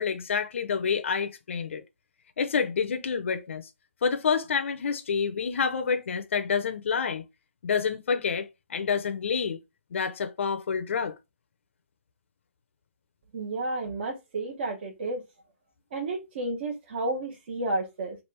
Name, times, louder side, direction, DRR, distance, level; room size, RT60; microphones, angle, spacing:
voice 1, 0.0-1.8 2.4-3.7 4.0-7.2 7.6-9.6 9.9-11.1, left 6 dB, 60° left, 0.6 m, -28 dB
voice 2, 13.3-15.2 15.9-18.2, right 2 dB, 45° right, 0.9 m, -31 dB
3.3 x 2.5 x 4.3 m
hypercardioid pair, 165°, 7 cm